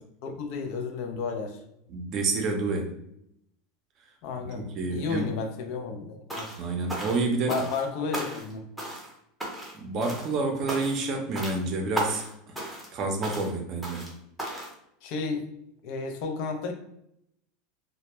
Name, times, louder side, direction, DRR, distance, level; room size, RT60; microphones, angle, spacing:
voice 1, 0.2-1.6 4.2-6.5 7.5-8.7 15.0-15.5 15.8-16.7, left 4 dB, 60° left, 4 dB, 0.4 m, -32 dB
voice 2, 1.9-2.9 4.4-5.3 6.6-7.6 9.7-12.5 12.9-14.0, right 3 dB, 45° right, 3 dB, 0.5 m, -29 dB
sound 1, 6.3-6.6 6.9-7.9 8.1-8.5 8.8-9.1 9.4-9.8 10.0-10.3 10.7-11.1 11.4-11.6 12.0-12.3 12.6-12.9 13.2-13.5 13.8-14.1 14.4-14.7, right 1 dB, ahead, 0.7 m, -35 dB
2.1 x 2.0 x 2.9 m, 0.76 s
supercardioid pair, 125°, 0 cm